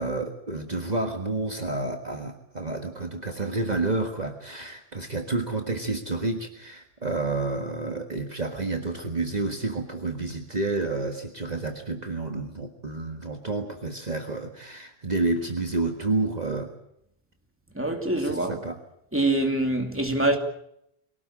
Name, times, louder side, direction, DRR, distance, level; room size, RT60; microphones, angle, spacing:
voice 1, 0.0-16.7 18.2-18.8, right 2 dB, 45° right, 1.7 m, -30 dB
voice 2, 17.7-18.6 19.1-20.4, right 2 dB, 10° right, 2.7 m, -24 dB
24.0 x 18.0 x 8.7 m
omnidirectional pair, 1.0 m